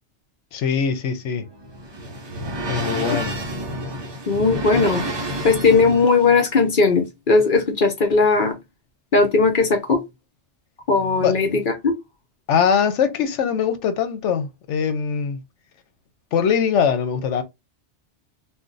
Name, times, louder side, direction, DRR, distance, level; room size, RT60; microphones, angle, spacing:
voice 1, 0.5-1.5 2.7-3.4 11.2-11.4 12.5-15.4 16.3-17.4, left 7 dB, 85° left, 1.0 m, -22 dB
sound 1, 1.2-6.4, right 1 dB, 30° right, 0.5 m, -29 dB
voice 2, 4.3-5.0 5.4-8.5 9.1-10.0 10.9-11.9, left 4 dB, 50° left, 0.8 m, -18 dB
2.6 x 2.2 x 3.8 m
omnidirectional pair, 1.2 m